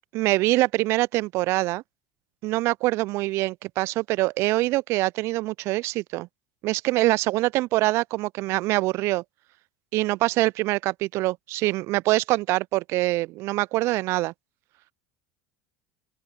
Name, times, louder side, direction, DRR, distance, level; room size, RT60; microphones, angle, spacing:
voice 1, 0.1-1.8 2.4-6.3 6.6-9.2 9.9-14.3, right 19 dB, 50° right, 0.4 m, -24 dB
open air
hypercardioid pair, 75°, 6 cm